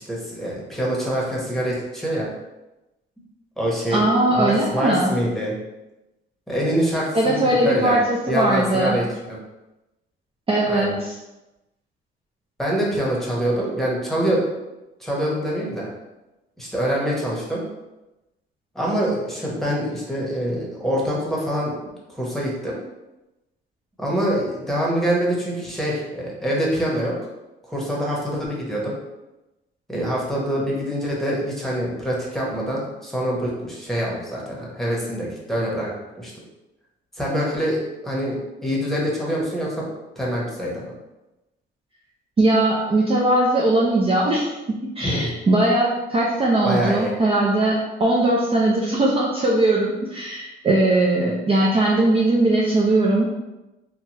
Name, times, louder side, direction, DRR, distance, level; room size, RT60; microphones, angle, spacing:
voice 1, 0.0-2.3 3.6-4.0 4.3-5.5 6.5-8.0 8.3-9.4 10.7-11.0 12.6-14.4 15.0-15.9 16.6-17.6 18.7-21.7 22.1-22.8 24.0-27.1 27.7-28.9 29.9-36.3 37.2-39.9 40.2-40.9 45.0-45.3 46.6-47.1, equal, ahead, -4 dB, 1.0 m, -25 dB
voice 2, 3.9-5.1 7.1-9.0 10.5-11.1 42.4-53.3, right 1 dB, 30° right, -4 dB, 0.5 m, -20 dB
3.1 x 2.3 x 2.9 m, 1.0 s
cardioid pair, 90°, 20 cm